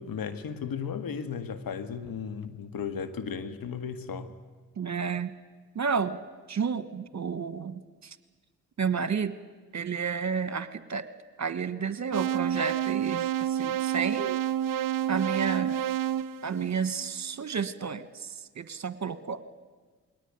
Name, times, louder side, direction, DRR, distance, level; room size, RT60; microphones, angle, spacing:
voice 1, 0.0-4.3, left 6 dB, 65° left, 11 dB, 1.8 m, -35 dB
voice 2, 4.8-5.3 5.7-6.2 6.5-8.2 8.8-9.4 9.7-11.1 11.4-14.4 15.1-15.8 16.4-19.4, right 6 dB, 45° right, 13 dB, 1.5 m, -31 dB
sound 1, 12.1-17.3, right 10 dB, 60° right, 0.7 m, -29 dB
22.0 x 18.5 x 9.5 m, 1.4 s
supercardioid pair, 45°, 37 cm